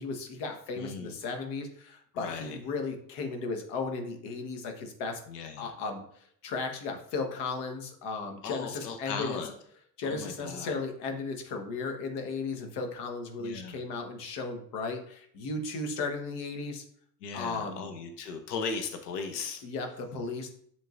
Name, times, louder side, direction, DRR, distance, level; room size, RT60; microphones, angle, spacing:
voice 1, 0.0-5.2 5.6-9.4 10.0-16.8 17.3-17.9 19.6-20.5, left 3 dB, 55° left, 4 dB, 1.4 m, -35 dB
voice 2, 0.8-1.2 2.1-2.6 5.3-5.7 8.4-9.5 10.0-10.7 13.4-13.8 17.2-19.6, left 5 dB, 75° left, 6 dB, 1.0 m, -37 dB
10.5 x 3.7 x 2.6 m, 0.65 s
hypercardioid pair, 70°, 48 cm